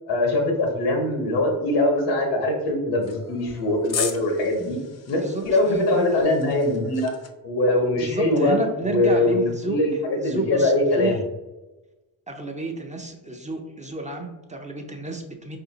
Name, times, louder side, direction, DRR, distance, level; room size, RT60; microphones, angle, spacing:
voice 1, 0.1-4.8 5.1-7.1 7.4-8.6 8.8-11.2, left 1 dB, 85° left, 2 dB, 0.9 m, -22 dB
sound 1, 3.0-7.3, left 6 dB, 40° left, 0.5 m, -36 dB
voice 2, 5.2-6.1 8.0-11.2 12.3-15.6, right 2 dB, 20° right, 2 dB, 0.5 m, -31 dB
4.1 x 2.7 x 2.7 m, 1.1 s
supercardioid pair, 50°, 41 cm